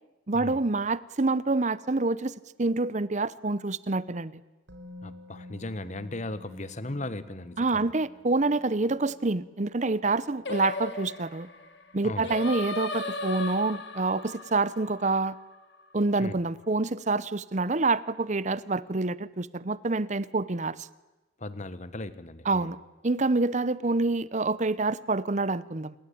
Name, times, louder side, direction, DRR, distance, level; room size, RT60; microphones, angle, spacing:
voice 1, 0.3-4.3 7.6-11.5 11.9-15.4 15.9-20.9 22.4-22.8 23.0-25.9, right 3 dB, 40° right, 18 dB, 0.8 m, -27 dB
Musical instrument, 4.7-12.6 12.9-13.0, left 2 dB, 65° right, 4.2 m, -52 dB
voice 2, 5.0-7.9 12.0-12.3 16.2-16.3 21.4-22.7, left 2 dB, 40° left, 14 dB, 1.3 m, -37 dB
Singing, 10.4-15.7, left 2 dB, 65° left, 2.1 m, -36 dB
27.5 x 21.0 x 8.7 m, 1.1 s
head